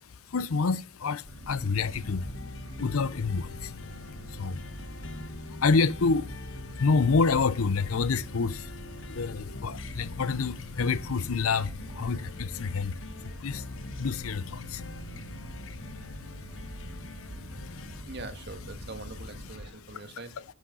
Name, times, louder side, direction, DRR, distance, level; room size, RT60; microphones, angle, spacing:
voice 1, 0.3-2.3 2.8-3.7 4.3-4.7 5.5-6.3 6.8-8.7 9.1-13.7 14.0-14.9 17.6-18.1 19.4-20.4, left 4 dB, 80° left, 0.6 m, -28 dB
sound 1, 1.2-19.7, equal, 80° right, 3.8 m, -44 dB
sound 2, 1.7-18.0, left 3 dB, 60° left, 1.0 m, -43 dB
voice 2, 18.0-20.3, right 2 dB, 50° right, 1.5 m, -42 dB
10.0 x 6.3 x 5.5 m
head